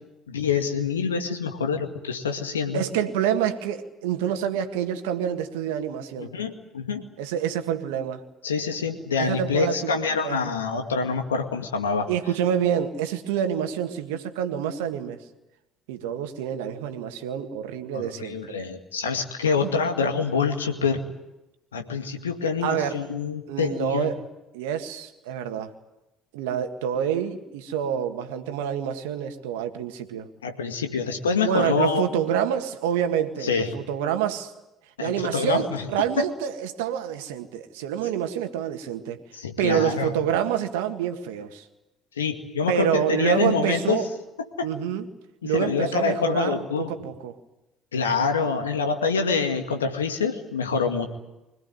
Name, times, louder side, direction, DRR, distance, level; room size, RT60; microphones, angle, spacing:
voice 1, 0.3-2.8 6.2-7.1 8.4-12.1 17.9-21.0 21.7-24.1 30.4-32.1 33.4-33.7 35.0-35.9 36.2-36.3 39.3-40.1 42.2-44.1 44.6-44.7 45.4-46.9 47.9-51.1, left 5 dB, 85° left, 5 dB, 2.1 m, -26 dB
voice 2, 2.7-6.3 7.2-8.2 9.2-10.4 12.1-15.2 15.9-18.6 19.6-19.7 22.6-23.0 23.5-24.2 24.5-25.7 26.3-30.3 31.4-34.5 35.0-39.2 39.6-41.7 42.7-44.1 44.6-45.1 45.4-47.4, right 9 dB, 75° right, 7 dB, 1.8 m, -27 dB
25.0 x 17.5 x 9.5 m, 0.97 s
figure-of-eight pair, 55°, 0 cm